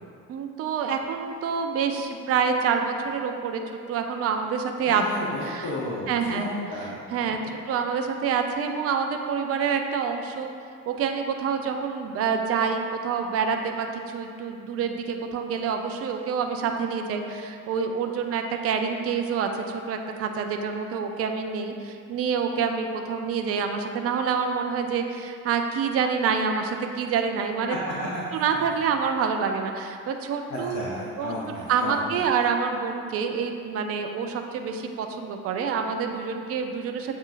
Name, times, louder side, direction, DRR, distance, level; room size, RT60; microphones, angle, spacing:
voice 1, 0.3-3.6 3.9-5.1 5.4-5.7 6.1-6.5 6.8-7.4 7.7-10.5 10.9-27.8 28.3-30.8 31.2-37.2, right 6 dB, 35° right, 4 dB, 0.5 m, -27 dB
voice 2, 4.8-7.0 7.4-7.5 28.0-28.4 30.5-32.0, left 1 dB, 50° left, -5 dB, 0.8 m, -33 dB
7.3 x 2.7 x 2.5 m, 2.3 s
figure-of-eight pair, 55°, 40 cm